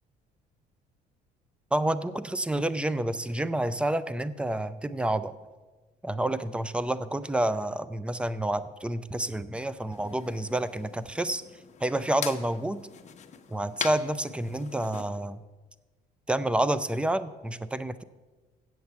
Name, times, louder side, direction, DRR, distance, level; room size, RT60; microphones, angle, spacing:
voice 1, 1.7-5.3 6.0-11.4 11.8-12.8 13.5-15.4 16.3-18.0, right 1 dB, 5° right, 14 dB, 0.4 m, -29 dB
sound 1, 9.9-15.1, left 8 dB, 45° left, 0.9 m, -41 dB
8.1 x 7.8 x 7.1 m, 1.2 s
cardioid pair, 110°, 17 cm